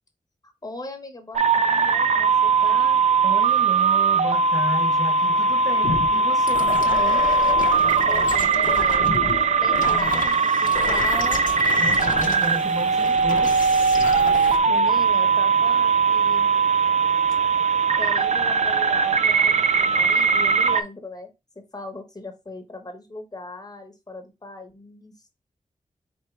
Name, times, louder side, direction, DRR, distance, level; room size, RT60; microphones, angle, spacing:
voice 1, 0.6-3.0 8.0-11.5 14.7-16.5 18.0-25.1, left 2 dB, 30° left, 1.1 m, -38 dB
sound 1, 1.4-20.8, right 5 dB, 60° right, 0.5 m, -20 dB
voice 2, 3.2-7.3 11.8-13.5, right 1 dB, 30° right, 0.8 m, -33 dB
sound 2, 5.8-14.6, left 4 dB, 85° left, 0.7 m, -31 dB
4.3 x 3.6 x 3.2 m
wide cardioid pair, 90°, 13 cm